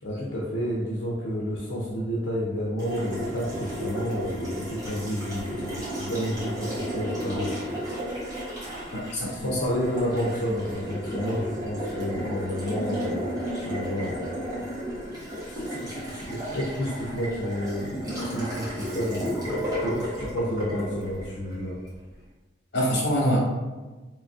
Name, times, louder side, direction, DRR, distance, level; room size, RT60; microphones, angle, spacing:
voice 1, 0.0-7.5 9.3-13.3 13.6-14.3 14.6-14.7 15.4-21.8, equal, 85° left, -5 dB, 0.6 m, -30 dB
Water tap faucet, 2.8-21.9, equal, 20° right, 1.0 m, -33 dB
voice 2, 8.9-9.5 22.7-23.4, equal, 60° left, -5 dB, 1.3 m, -25 dB
3.9 x 3.0 x 2.4 m, 1.2 s
head